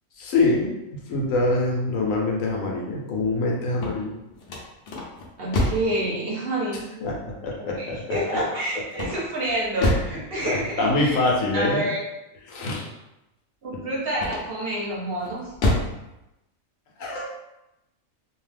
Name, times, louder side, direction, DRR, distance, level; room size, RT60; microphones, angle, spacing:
voice 1, 0.2-4.2 7.0-8.4 9.8-10.0 10.4-11.8 12.5-12.9 13.7-13.8 17.0-17.3, left 2 dB, 75° left, -2 dB, 1.0 m, -25 dB
sound 1, 3.6-6.0 8.9-10.2 14.1-14.7 15.2-16.0, left 1 dB, 55° left, 0.8 m, -26 dB
voice 2, 5.4-6.8 7.8-11.2 11.5-12.0 13.6-15.4, right 1 dB, 50° right, -5 dB, 0.9 m, -28 dB
2.7 x 2.2 x 3.3 m, 0.92 s
omnidirectional pair, 1.4 m